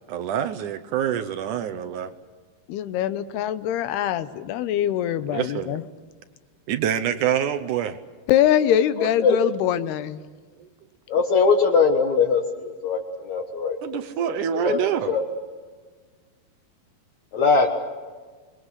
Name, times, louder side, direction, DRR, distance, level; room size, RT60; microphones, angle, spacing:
voice 1, 0.1-2.1 5.3-5.8 6.7-8.0 13.8-15.1, right 9 dB, 70° right, 9 dB, 2.0 m, -26 dB
voice 2, 2.7-5.8 8.3-10.2, left 11 dB, 90° left, 12 dB, 3.0 m, -23 dB
voice 3, 9.0-9.4 11.1-15.2 17.3-17.7, left 5 dB, 60° left, 4 dB, 2.3 m, -22 dB
26.0 x 21.5 x 8.2 m, 1.5 s
omnidirectional pair, 4.5 m